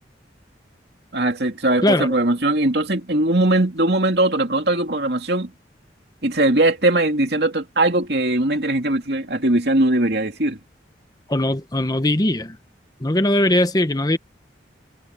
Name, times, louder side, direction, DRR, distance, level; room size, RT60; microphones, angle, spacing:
voice 1, 1.1-5.5 6.2-10.6, right 1 dB, 60° right, 2.7 m, -20 dB
voice 2, 11.3-12.6 13.0-14.2, left 1 dB, 20° left, 0.9 m, -20 dB
head